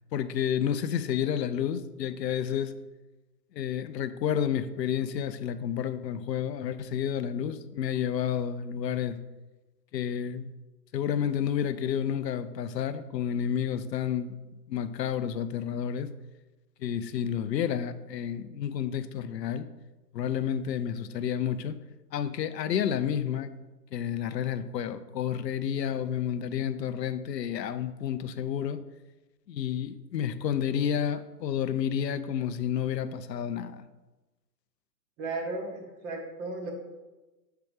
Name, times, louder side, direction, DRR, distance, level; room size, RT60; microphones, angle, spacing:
voice 1, 0.1-2.7 3.5-9.2 9.9-10.5 10.9-14.4 14.7-16.1 16.8-19.7 20.1-21.8 22.1-23.5 23.9-28.8 29.5-33.9, left 9 dB, 85° left, 12 dB, 0.6 m, -30 dB
voice 2, 35.2-36.7, right 2 dB, 20° right, 2 dB, 0.8 m, -35 dB
6.8 x 4.4 x 3.4 m, 1.1 s
hypercardioid pair, 135°, 49 cm